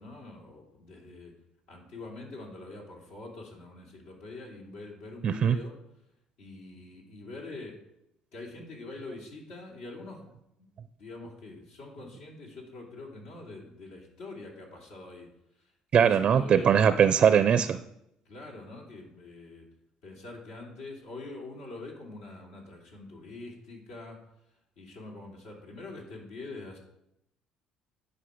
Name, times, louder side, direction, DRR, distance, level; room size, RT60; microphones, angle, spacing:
voice 1, 0.0-1.3 1.7-5.7 6.4-7.7 8.3-10.3 11.0-15.3 15.6-16.7 18.2-19.7 20.0-24.2 24.8-26.8, left 2 dB, 80° left, -1 dB, 2.8 m, -44 dB
voice 2, 5.2-5.6 15.9-17.8, right 8 dB, 50° right, 12 dB, 0.4 m, -21 dB
10.0 x 5.3 x 5.0 m, 0.81 s
supercardioid pair, 85°, 2 cm